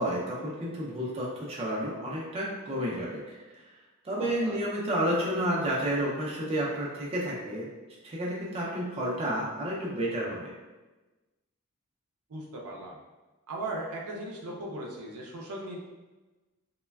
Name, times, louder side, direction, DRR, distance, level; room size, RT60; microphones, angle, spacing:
voice 1, 0.0-3.4 4.0-7.7 8.0-10.5, right 1 dB, 25° right, -5 dB, 0.4 m, -30 dB
voice 2, 4.2-4.6 12.3-13.0 13.5-15.8, right 1 dB, 80° right, -2 dB, 0.5 m, -38 dB
3.1 x 2.1 x 2.2 m, 1.2 s
head